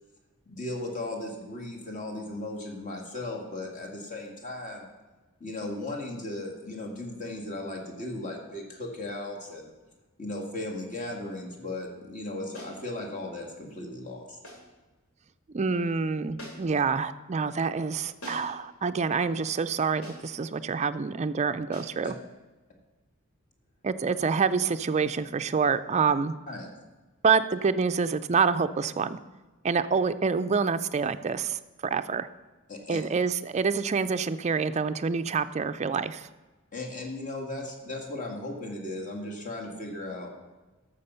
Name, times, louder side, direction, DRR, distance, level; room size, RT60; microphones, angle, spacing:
voice 1, 0.5-4.9 5.4-9.7 10.2-14.4 22.0-22.1 26.5-26.7 32.7-33.0 36.7-40.3, left 2 dB, 35° left, 0 dB, 2.0 m, -36 dB
sound 1, 12.5-12.8 14.4-14.7 16.4-16.8 18.2-18.6 20.0-20.4 21.7-22.0, left 1 dB, 75° left, 2.9 m, -44 dB
voice 2, 15.5-22.1 23.8-26.3 27.2-29.2 29.6-32.3 32.9-36.3, right 5 dB, 30° right, 11 dB, 0.4 m, -27 dB
12.0 x 6.9 x 5.6 m, 1.2 s
head